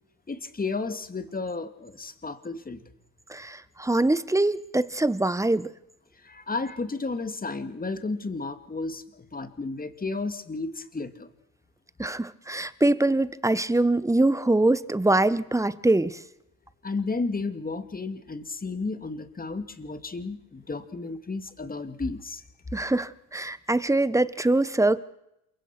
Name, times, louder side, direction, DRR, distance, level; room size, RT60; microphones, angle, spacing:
voice 1, 0.3-2.8 6.2-11.3 16.8-22.4, left 3 dB, 20° left, 10 dB, 2.5 m, -33 dB
voice 2, 3.3-5.7 12.0-16.2 22.7-25.0, right 2 dB, 5° right, 16 dB, 1.3 m, -23 dB
28.0 x 23.5 x 6.1 m, 0.84 s
hypercardioid pair, 75°, 47 cm